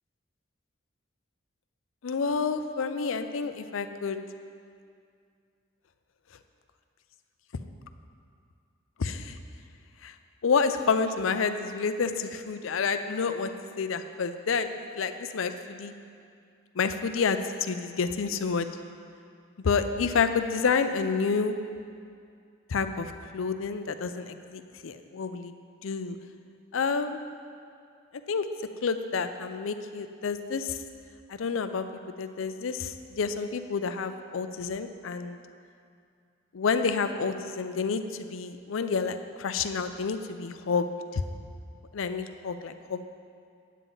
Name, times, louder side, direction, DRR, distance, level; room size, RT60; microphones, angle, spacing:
voice 1, 2.0-4.2 9.0-9.3 10.0-10.1 10.4-13.5 13.8-15.9 16.8-18.7 19.6-21.5 22.7-25.5 25.8-26.2 26.7-27.2 28.3-28.5 28.8-30.8 31.3-31.8 32.2-35.4 36.5-40.9 41.1-41.2 41.9-43.0, left 5 dB, 85° left, 9 dB, 0.5 m, -29 dB
9.2 x 9.1 x 3.9 m, 2.3 s
head